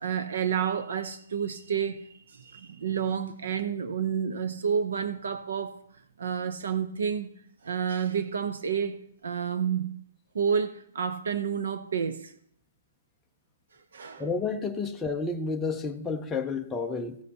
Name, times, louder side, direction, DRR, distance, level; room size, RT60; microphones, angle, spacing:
voice 1, 0.0-5.8 6.2-7.3 7.6-9.0 9.2-9.9 10.3-12.3 13.9-14.2, right 7 dB, 70° right, 0.7 m, -30 dB
voice 2, 14.2-17.2, left 4 dB, 5° left, 0.4 m, -30 dB
15.0 x 9.7 x 2.8 m
hypercardioid pair, 175°, 0 cm